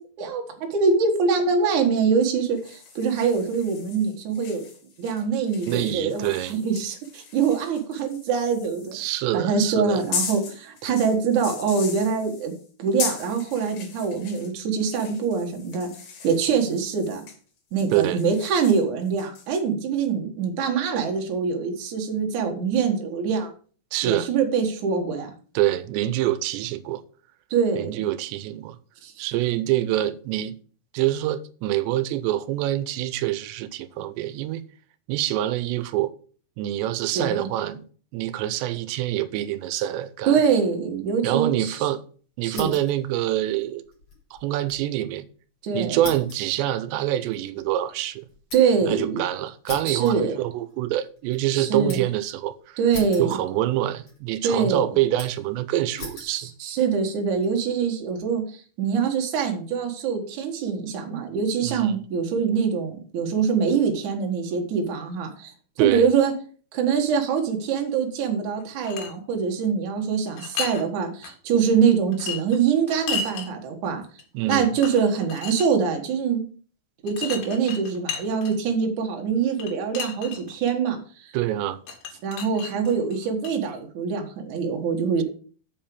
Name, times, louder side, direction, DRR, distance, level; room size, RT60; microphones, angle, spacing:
voice 1, 0.0-4.7 5.0-9.0 9.3-12.5 12.8-15.9 16.2-17.3 17.7-23.5 24.0-25.3 27.5-28.0 29.0-29.2 37.2-37.5 40.3-41.8 42.4-42.8 45.6-46.0 48.5-49.2 49.8-50.4 51.5-52.0 52.8-53.4 54.4-54.9 56.2-65.5 65.8-66.3 66.7-74.0 74.5-76.4 77.0-81.3 82.2-85.2, right 6 dB, 55° right, 2.6 m, -24 dB
sound 1, 2.4-9.2 9.9-14.5 14.8-17.4 17.7-19.6, left 5 dB, 65° left, 4.0 m, -38 dB
voice 2, 5.7-6.5 8.9-10.0 17.9-18.2 23.9-24.3 25.6-27.0 27.8-28.8 29.2-30.6 30.9-34.6 35.1-36.1 36.6-37.8 38.1-40.4 41.2-42.0 42.4-43.8 44.3-45.3 45.7-48.3 48.9-52.8 53.2-56.5 61.6-62.0 65.8-66.1 74.3-74.7 81.3-81.8, right 13 dB, 90° right, 2.9 m, -26 dB
sound 2, 42.5-43.0 43.3-44.9 45.2-45.3 46.0-48.9 49.7-50.8 51.2-52.2 52.9-53.8 54.1-54.7 55.2-55.5 56.0-56.4 57.0-57.5, left 3 dB, 35° left, 4.2 m, -40 dB
sound 3, 68.6-69.1 70.3-70.8 71.2-71.3 72.1-73.5 74.2-74.3 74.5-75.7 77.1-78.7 79.6-80.7 81.9-83.5, left 6 dB, 90° left, 3.9 m, -33 dB
7.3 x 5.5 x 6.8 m
omnidirectional pair, 4.9 m